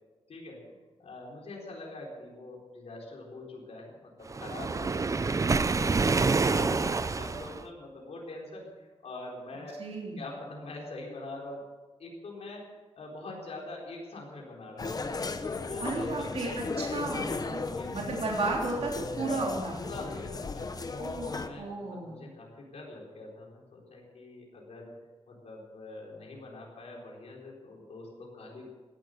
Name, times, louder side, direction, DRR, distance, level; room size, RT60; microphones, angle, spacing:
voice 1, 0.3-9.8 10.2-11.7 12.0-15.1 15.5-16.6 17.3-18.1 19.8-20.7 21.2-24.9 25.3-28.7, left 2 dB, 80° left, -2 dB, 4.3 m, -44 dB
Waves surf, 4.3-7.6, right 4 dB, 30° right, 0.5 m, -27 dB
voice 2, 9.8-10.2 15.8-19.8 20.9-22.3, right 3 dB, 75° right, -2 dB, 3.4 m, -34 dB
sound 1, 14.8-21.5, left 3 dB, 35° left, 0.9 m, -35 dB
17.5 x 11.5 x 6.7 m, 1.3 s
wide cardioid pair, 155°, 11 cm